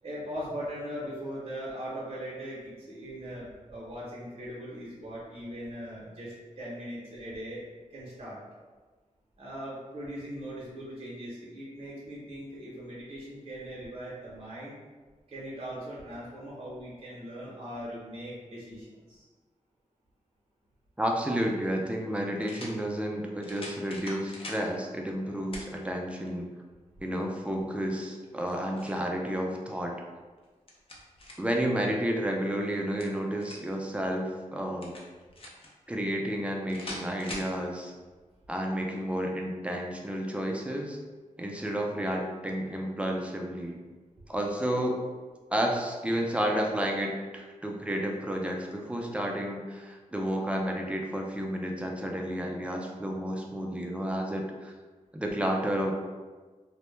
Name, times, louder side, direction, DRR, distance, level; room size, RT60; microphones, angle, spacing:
voice 1, 0.0-7.6 7.9-8.4 9.4-14.8 15.3-19.2, equal, 50° right, -7 dB, 0.7 m, -40 dB
voice 2, 21.0-26.5 27.0-29.9 31.4-34.9 35.9-37.9 38.5-41.0 41.4-43.8 44.3-45.0 45.5-54.7 55.1-55.9, equal, 10° right, 0 dB, 0.4 m, -31 dB
sound 1, 21.2-21.3 22.4-22.8 23.4-24.6 25.5-25.7 26.3-26.4 28.2-29.0 30.4-31.6 32.7-33.7 34.8-35.7 36.7-37.5, left 1 dB, 45° left, 0.5 m, -43 dB
2.1 x 2.1 x 3.1 m, 1.3 s
wide cardioid pair, 80°, 13 cm